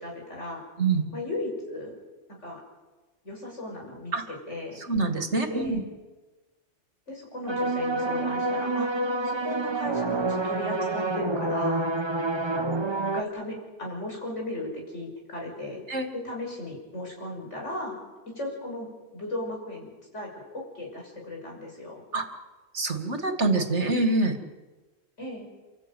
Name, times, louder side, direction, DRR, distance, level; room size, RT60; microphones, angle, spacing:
voice 1, 0.0-0.6 1.1-1.9 2.4-2.6 3.2-4.8 5.4-5.8 7.1-8.9 9.2-11.9 13.1-15.8 16.1-18.0 18.3-22.0 25.2-25.5, left 1 dB, 75° left, 0 dB, 6.6 m, -36 dB
voice 2, 4.8-5.8 15.9-16.1 22.1-22.3 22.7-24.4, right 3 dB, 65° right, 7 dB, 2.5 m, -25 dB
sound 1, 7.5-13.2, right 2 dB, 25° right, 1.1 m, -28 dB
29.5 x 13.5 x 9.3 m, 1.2 s
omnidirectional pair, 1.3 m